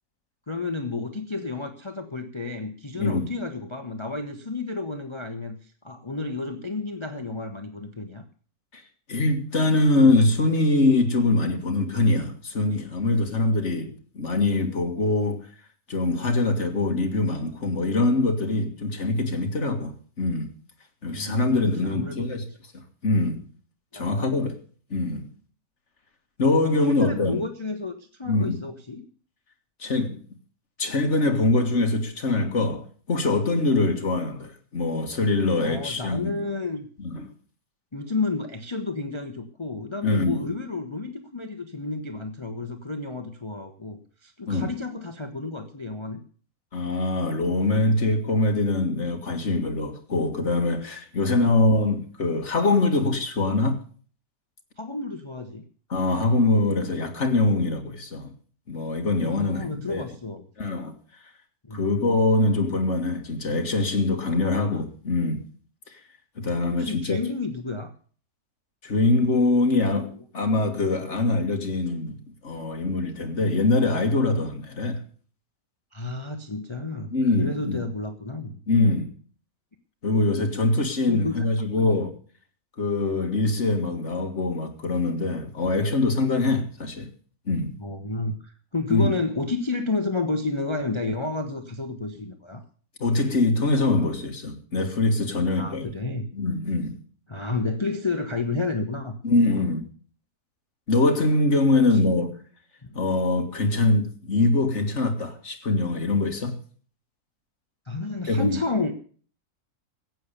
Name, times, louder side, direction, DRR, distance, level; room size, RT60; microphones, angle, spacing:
voice 1, 0.5-8.2 21.1-21.5 21.8-22.3 23.9-24.2 26.6-29.0 33.8-33.9 35.6-36.9 37.9-46.2 54.8-55.6 59.2-60.4 61.7-61.8 66.7-67.9 69.9-70.0 75.9-77.1 77.4-78.6 81.1-81.3 81.8-82.0 87.8-92.6 95.5-96.3 97.3-99.2 102.8-102.9 107.9-108.9, left 3 dB, 20° left, 1.0 m, -31 dB
voice 2, 9.1-15.4 15.9-20.5 21.0-22.4 23.0-23.4 23.9-24.6 24.9-25.3 26.4-27.4 28.2-28.6 29.8-30.2 30.8-36.4 37.0-37.3 40.0-40.4 44.5-44.7 46.7-53.8 55.9-58.3 58.7-60.0 60.6-60.9 61.7-65.4 65.9-66.0 66.4-67.2 68.8-75.0 77.1-77.8 78.7-79.1 80.0-82.1 82.8-87.1 87.5-87.7 88.9-89.1 93.0-96.0 96.3-97.0 99.2-99.9 100.9-102.3 102.9-106.6 108.3-108.6, left 2 dB, 50° left, 2.2 m, -23 dB
15.0 x 8.7 x 6.8 m
omnidirectional pair, 1.6 m